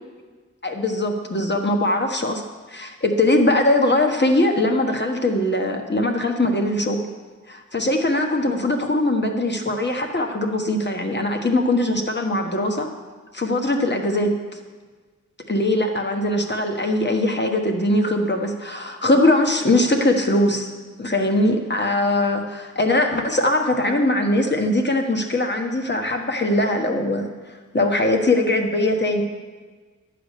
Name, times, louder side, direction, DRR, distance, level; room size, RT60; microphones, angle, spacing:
voice 1, 0.6-2.4 2.7-7.1 7.5-12.9 13.3-14.4 15.5-20.7 21.0-27.3 27.7-29.2, left 1 dB, 35° left, 3 dB, 1.4 m, -21 dB
11.5 x 5.0 x 8.3 m, 1.4 s
cardioid pair, 45°, 31 cm